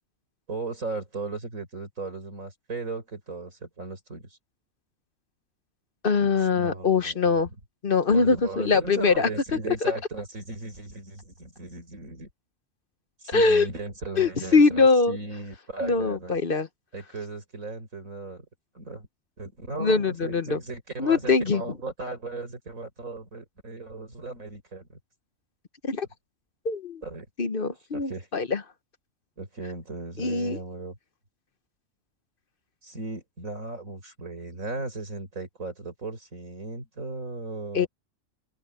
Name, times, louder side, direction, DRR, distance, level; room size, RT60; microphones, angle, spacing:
voice 1, 0.5-4.4 6.2-7.2 8.1-12.3 13.2-16.4 16.9-18.5 18.7-19.1 19.4-25.0 27.0-27.3 27.9-28.3 29.4-31.0 32.8-37.9, right 3 dB, 75° right, 5.8 m, -36 dB
voice 2, 6.0-7.5 7.8-9.3 9.8-9.9 13.3-13.7 14.2-15.2 15.8-16.7 19.8-20.6 21.0-21.6 25.8-26.1 26.6-27.0 27.4-28.6 30.2-30.6 37.7-37.9, left 4 dB, 45° left, 1.1 m, -22 dB
open air
omnidirectional pair, 1.4 m